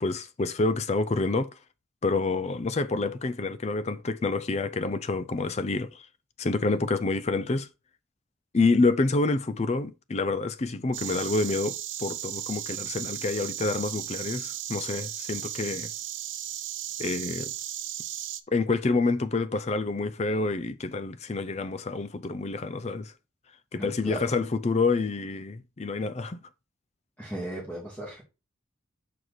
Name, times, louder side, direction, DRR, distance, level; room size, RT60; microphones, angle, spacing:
voice 1, 0.0-1.5 2.0-6.1 6.4-7.7 8.5-15.9 17.0-17.5 18.5-23.1 23.7-26.4, left 3 dB, 30° left, 0.4 m, -28 dB
Insect, 10.9-18.4, right 12 dB, 65° right, 0.6 m, -35 dB
voice 2, 23.7-24.3 27.2-28.2, right 1 dB, 10° left, 2.2 m, -37 dB
6.5 x 4.7 x 4.0 m
head